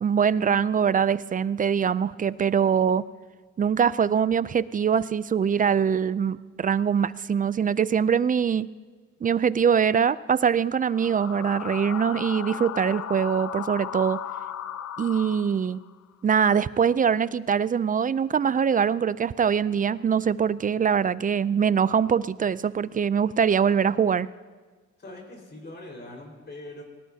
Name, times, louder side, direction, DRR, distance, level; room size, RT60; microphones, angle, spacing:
voice 1, 0.0-3.0 3.6-8.7 9.2-14.2 15.0-15.8 16.2-24.3, right 7 dB, 30° right, 18 dB, 0.4 m, -23 dB
sound 1, 10.8-15.9, left 10 dB, 55° left, 0.7 m, -36 dB
voice 2, 25.0-26.8, left 1 dB, 35° left, -1 dB, 4.6 m, -42 dB
20.5 x 18.5 x 2.8 m, 1.4 s
cardioid pair, 90°, 30 cm